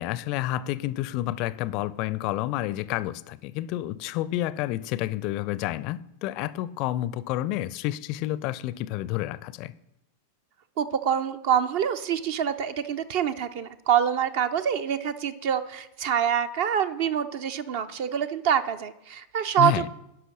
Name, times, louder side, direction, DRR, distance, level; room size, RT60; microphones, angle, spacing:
voice 1, 0.0-9.7 19.6-19.9, left 15 dB, 40° left, 0.4 m, -29 dB
voice 2, 10.8-19.9, right 9 dB, 50° right, 0.6 m, -26 dB
10.5 x 5.7 x 6.2 m
figure-of-eight pair, 90°, 0 cm